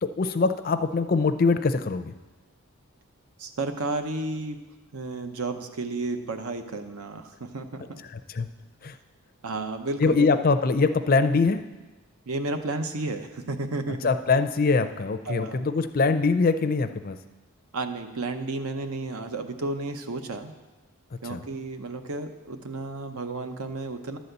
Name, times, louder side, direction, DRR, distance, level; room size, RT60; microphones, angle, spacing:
voice 1, 0.0-2.1 8.1-8.5 8.8-9.0 10.0-11.6 13.9-17.2 21.2-21.4, left 4 dB, 40° left, 9 dB, 0.4 m, -23 dB
voice 2, 3.4-4.6 4.9-8.0 9.4-10.3 12.3-14.0 15.3-15.6 17.7-20.5 21.2-24.2, right 2 dB, 80° right, 7 dB, 0.8 m, -32 dB
11.5 x 4.1 x 7.9 m, 1.2 s
head